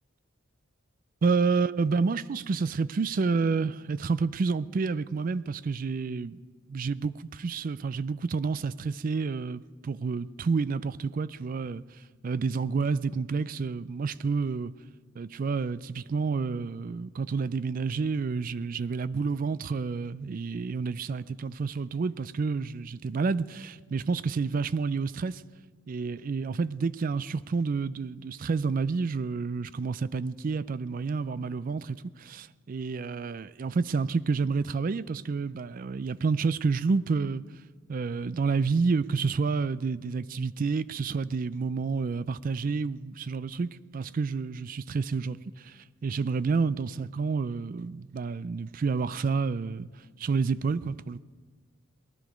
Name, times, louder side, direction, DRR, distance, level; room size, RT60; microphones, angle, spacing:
voice 1, 1.2-6.4 6.7-11.8 12.2-14.7 15.2-25.4 25.9-37.4 37.9-49.9 50.2-51.2, right 4 dB, 40° right, 0.3 m, -29 dB
19.0 x 11.5 x 5.1 m
head